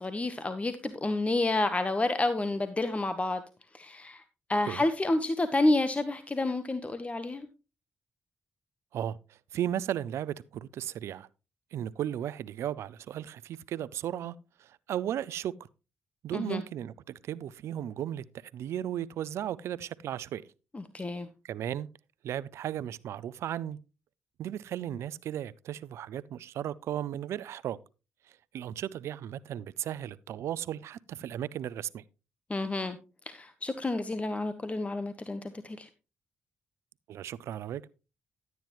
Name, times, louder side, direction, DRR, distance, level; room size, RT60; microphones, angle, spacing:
voice 1, 0.0-3.4 3.7-4.2 4.5-7.5 16.3-16.6 20.7-21.3 32.5-33.0 33.3-35.9, left 2 dB, 30° left, 1.0 m, -29 dB
voice 2, 8.9-11.3 11.7-15.5 16.2-20.5 21.4-21.9 22.2-23.8 24.4-27.8 28.5-32.0 37.1-37.8, right 11 dB, 75° right, 0.5 m, -35 dB
11.5 x 9.3 x 3.0 m
supercardioid pair, 45°, 5 cm